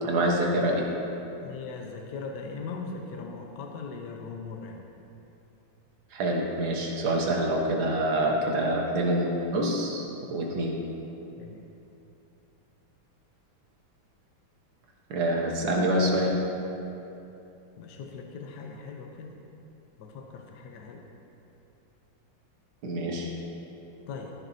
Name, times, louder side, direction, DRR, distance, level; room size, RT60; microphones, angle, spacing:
voice 1, 0.0-0.8 6.1-10.7 15.1-16.3 22.8-23.3, right 1 dB, 80° right, -1 dB, 1.9 m, -26 dB
voice 2, 1.4-4.8 11.4-11.7 17.8-19.3 20.0-21.0 24.1-24.3, left 4 dB, 65° left, 2 dB, 1.3 m, -39 dB
13.5 x 10.5 x 2.7 m, 2.9 s
omnidirectional pair, 2.2 m